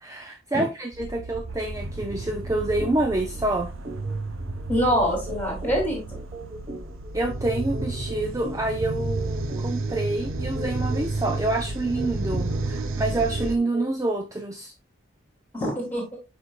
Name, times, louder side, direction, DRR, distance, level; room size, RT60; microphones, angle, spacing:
voice 1, 0.0-3.7 7.1-14.7, right 2 dB, 15° right, 0.5 m, -27 dB
sound 1, 0.9-13.6, right 2 dB, 75° right, 0.7 m, -31 dB
sound 2, 2.8-3.0 3.3-3.5 3.8-14.1, left 1 dB, 35° right, 1.0 m, -40 dB
voice 2, 4.7-6.0 15.5-16.2, equal, 10° left, 3.1 m, -24 dB
8.3 x 5.2 x 2.4 m
head